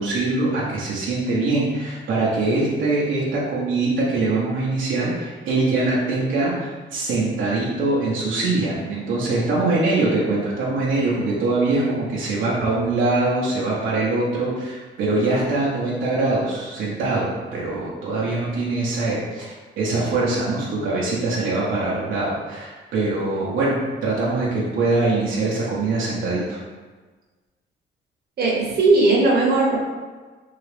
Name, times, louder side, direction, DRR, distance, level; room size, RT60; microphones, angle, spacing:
voice 1, 0.0-26.6, right 2 dB, 80° right, -6 dB, 0.9 m, -23 dB
voice 2, 28.4-29.8, right 3 dB, 55° right, -4 dB, 1.0 m, -18 dB
3.7 x 2.4 x 3.3 m, 1.3 s
cardioid pair, 90°, 20 cm